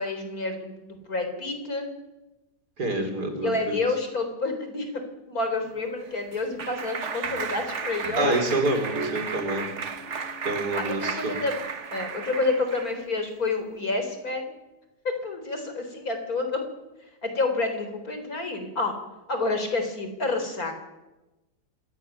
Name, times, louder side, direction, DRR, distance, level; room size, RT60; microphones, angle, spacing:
voice 1, 0.0-1.9 3.4-8.3 10.7-11.6 11.9-14.5 15.0-16.6 17.2-19.0 19.3-20.8, left 3 dB, 65° left, 6 dB, 4.6 m, -29 dB
voice 2, 2.8-3.8 8.2-9.6 10.4-11.4, right 2 dB, 80° right, 5 dB, 4.8 m, -27 dB
Clapping, 5.7-13.0, right 5 dB, 50° right, 1.6 m, -33 dB
26.5 x 17.0 x 9.4 m, 1.1 s
omnidirectional pair, 1.7 m